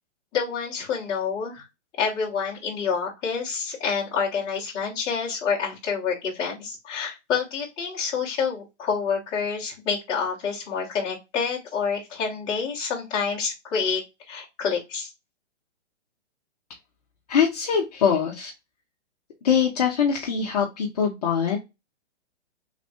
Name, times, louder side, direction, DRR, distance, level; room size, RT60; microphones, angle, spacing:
voice 1, 0.3-1.7 2.0-14.0 14.3-15.1, left 6 dB, 10° left, -6 dB, 0.9 m, -28 dB
voice 2, 17.3-18.5 19.4-21.6, left 7 dB, 35° left, -2 dB, 0.6 m, -23 dB
3.5 x 2.9 x 2.7 m, 0.23 s
hypercardioid pair, 165°, 36 cm